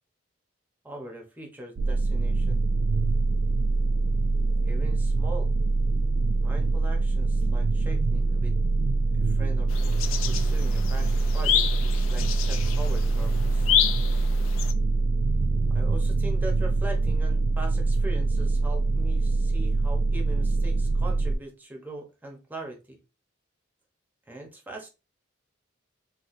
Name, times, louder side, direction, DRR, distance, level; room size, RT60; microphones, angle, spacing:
voice 1, 0.8-2.6 4.7-5.5 6.4-8.6 9.2-9.7 10.3-13.7 15.7-23.0 24.3-24.9, right 1 dB, 10° right, 0 dB, 0.8 m, -41 dB
sound 1, 1.8-21.4, right 3 dB, 75° right, 0.3 m, -24 dB
sound 2, 9.7-14.7, left 10 dB, 85° left, 0.4 m, -29 dB
4.1 x 2.3 x 2.5 m, 0.30 s
head